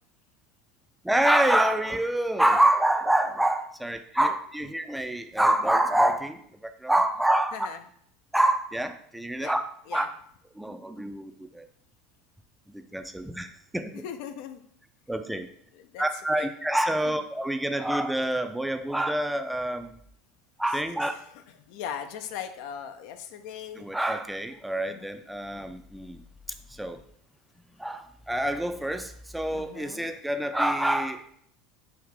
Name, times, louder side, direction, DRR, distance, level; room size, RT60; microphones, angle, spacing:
voice 1, 1.0-6.4 6.8-7.7 8.3-9.6 9.9-10.1 10.6-11.6 12.7-13.5 13.7-14.0 15.1-15.5 16.0-19.9 20.6-21.1 23.8-26.2 26.8-27.0 27.8-31.4, right 1 dB, 5° right, 8 dB, 0.4 m, -26 dB
voice 2, 14.0-14.6 15.7-16.1 16.4-16.5 17.1-17.2 21.0-23.8 24.9-25.1 29.5-30.1, left 8 dB, 65° left, 8 dB, 0.4 m, -39 dB
4.8 x 2.7 x 3.6 m, 0.65 s
hypercardioid pair, 80°, 0 cm